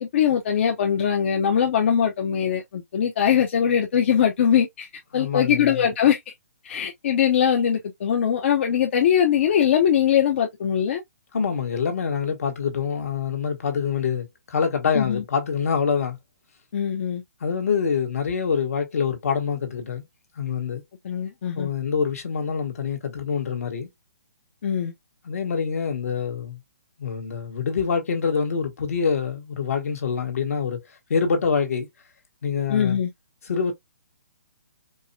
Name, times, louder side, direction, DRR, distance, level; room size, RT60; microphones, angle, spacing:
voice 1, 0.0-4.9 5.1-6.2 6.6-11.0 14.9-15.2 16.7-17.2 21.0-21.7 24.6-24.9 32.7-33.1, left 8 dB, 50° left, 0.8 m, -21 dB
voice 2, 5.1-5.8 11.3-16.2 17.4-20.0 20.4-20.8 21.5-23.9 25.2-26.6 27.0-30.8 31.1-31.9 32.4-33.0 33.4-33.7, left 6 dB, 70° left, 1.4 m, -25 dB
4.6 x 2.2 x 2.7 m
hypercardioid pair, 160°, 8 cm